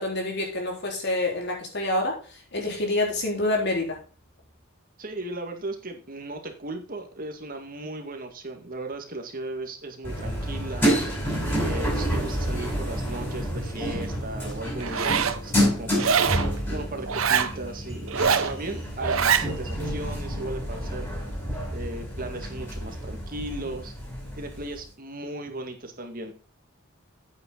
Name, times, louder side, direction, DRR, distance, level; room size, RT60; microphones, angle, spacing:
voice 1, 0.0-2.2 2.5-4.0, left 2 dB, 55° left, 0 dB, 4.1 m, -27 dB
voice 2, 5.0-10.9 11.6-16.3 16.7-21.1 21.7-23.9 24.4-26.3, right 2 dB, 45° right, 4 dB, 2.0 m, -36 dB
sound 1, 10.0-24.8, equal, 10° left, 5.5 m, -29 dB
Zipper (clothing), 14.8-15.4 16.0-16.5 17.1-17.5 18.1-18.5 19.0-19.5, right 7 dB, 80° right, 0.9 m, -23 dB
8.9 x 8.6 x 3.9 m, 0.35 s
head